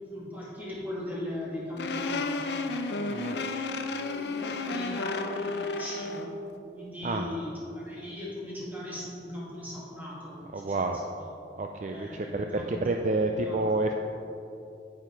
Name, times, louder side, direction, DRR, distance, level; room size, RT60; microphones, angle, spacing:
voice 1, 0.1-3.0 4.1-6.4 6.7-10.9 11.8-13.6, left 1 dB, 10° right, -7 dB, 2.5 m, -39 dB
sound 1, 1.8-6.3, left 3 dB, 75° left, 0.6 m, -32 dB
voice 2, 10.5-11.0 11.6-13.9, right 2 dB, 40° right, 4 dB, 0.4 m, -29 dB
9.0 x 8.7 x 4.6 m, 2.8 s
head